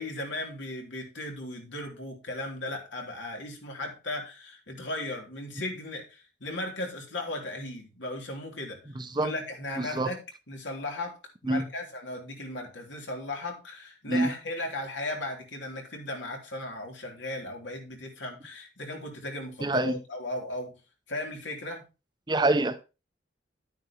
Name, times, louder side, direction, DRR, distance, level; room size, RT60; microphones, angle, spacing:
voice 1, 0.0-8.8 9.2-10.2 10.5-20.8 21.1-21.8, left 2 dB, 85° left, 3.4 m, -36 dB
voice 2, 9.0-9.3 9.8-10.1 11.5-11.6 14.1-14.3 19.6-19.9 22.3-22.8, right 2 dB, 25° right, 0.7 m, -26 dB
11.0 x 9.2 x 3.0 m
head